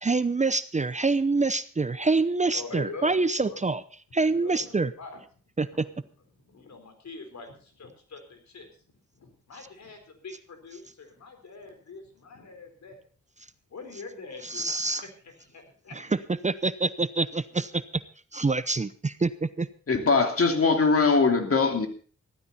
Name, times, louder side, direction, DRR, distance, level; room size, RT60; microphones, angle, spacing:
voice 1, 0.0-3.8 4.1-4.9 5.6-5.9 14.4-15.0 15.9-18.0 18.3-19.7, right 3 dB, 25° right, 15 dB, 0.7 m, -26 dB
voice 2, 2.5-3.6 4.3-4.7 5.0-5.2 5.7-5.8 6.5-8.7 9.1-13.0 13.7-14.7 15.2-16.0, left 3 dB, 70° left, 6 dB, 4.3 m, -43 dB
voice 3, 19.9-21.9, left 4 dB, 50° left, 5 dB, 2.9 m, -21 dB
15.5 x 13.0 x 4.2 m, 0.42 s
cardioid pair, 65°, 29 cm